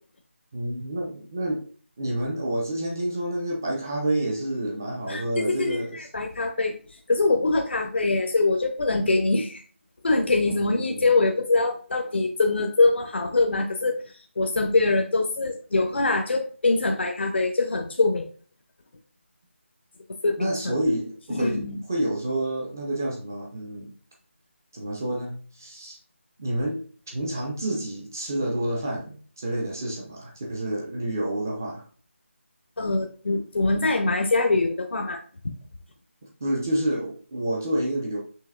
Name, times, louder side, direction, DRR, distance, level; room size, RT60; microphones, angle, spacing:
voice 1, 0.5-1.6 2.0-6.0 10.4-11.2 20.4-21.6 21.9-23.9 24.7-26.0 26.4-26.8 27.1-31.8 36.4-38.2, right 1 dB, 15° right, -1 dB, 0.4 m, -29 dB
voice 2, 5.5-9.6 10.0-14.0 14.4-18.2 20.2-20.8 21.3-21.8 32.8-35.5, left 3 dB, 55° left, 4 dB, 0.5 m, -23 dB
5.6 x 2.8 x 2.4 m, 0.40 s
figure-of-eight pair, 170°, 7 cm